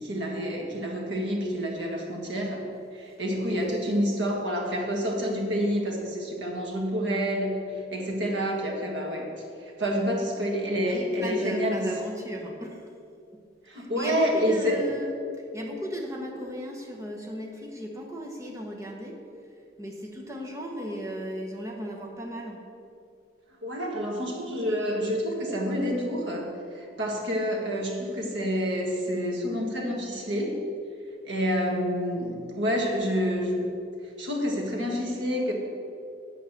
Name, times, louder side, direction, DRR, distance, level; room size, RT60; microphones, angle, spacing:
voice 1, 0.0-2.6 2.9-7.6 7.9-9.3 9.6-11.9 13.7-14.8 23.6-30.6 31.2-33.6 34.2-35.5, equal, 85° right, 0 dB, 1.7 m, -28 dB
voice 2, 10.8-12.9 13.7-15.2 15.5-19.2 19.8-22.6, equal, 15° right, 0 dB, 1.1 m, -35 dB
8.6 x 5.8 x 7.2 m, 2.5 s
head